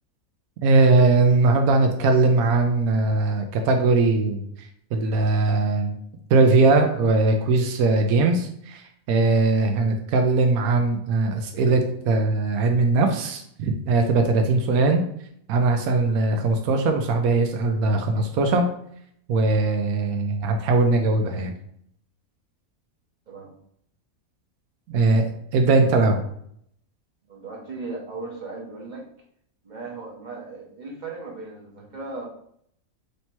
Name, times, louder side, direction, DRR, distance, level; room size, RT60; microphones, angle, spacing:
voice 1, 0.6-4.4 4.9-6.0 6.3-15.0 15.5-18.6 19.3-21.5 24.9-26.2, right 3 dB, 85° right, 4 dB, 1.0 m, -20 dB
voice 2, 27.2-29.1 29.6-32.3, right 3 dB, 40° right, -1 dB, 0.8 m, -37 dB
3.3 x 2.8 x 4.3 m, 0.69 s
omnidirectional pair, 1.5 m